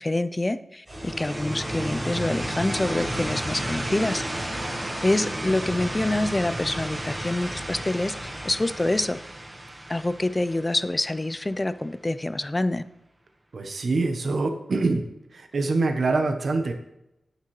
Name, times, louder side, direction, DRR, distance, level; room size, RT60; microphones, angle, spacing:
voice 1, 0.0-4.2 5.0-9.2 9.9-12.8, left 2 dB, 20° left, 13 dB, 0.5 m, -26 dB
sound 1, 0.9-8.9, left 1 dB, 90° left, 2.2 m, -43 dB
sound 2, 0.9-11.6, right 1 dB, 20° right, 1.3 m, -32 dB
voice 2, 13.5-15.0 15.3-16.7, right 3 dB, 60° right, 6 dB, 0.9 m, -24 dB
9.4 x 8.9 x 3.2 m, 0.87 s
wide cardioid pair, 90°, 0 cm